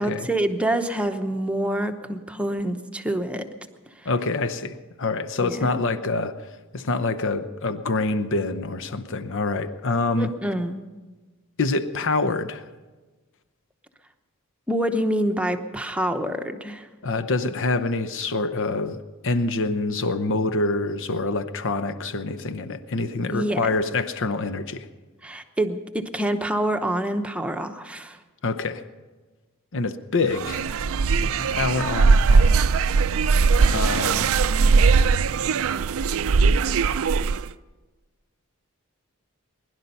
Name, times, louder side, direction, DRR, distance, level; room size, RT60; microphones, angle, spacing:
voice 1, 0.0-3.5 5.4-5.9 10.2-10.8 14.7-16.9 23.3-23.6 25.2-28.2, right 1 dB, 5° right, 6 dB, 0.8 m, -26 dB
voice 2, 4.0-6.3 6.7-10.3 11.6-12.6 17.0-24.9 28.4-28.8 29.7-30.7 31.1-32.6 33.7-34.4, left 3 dB, 60° left, 11 dB, 0.8 m, -26 dB
sound 1, 30.3-37.5, right 4 dB, 70° right, 0.4 m, -20 dB
21.0 x 11.0 x 5.5 m, 1.3 s
head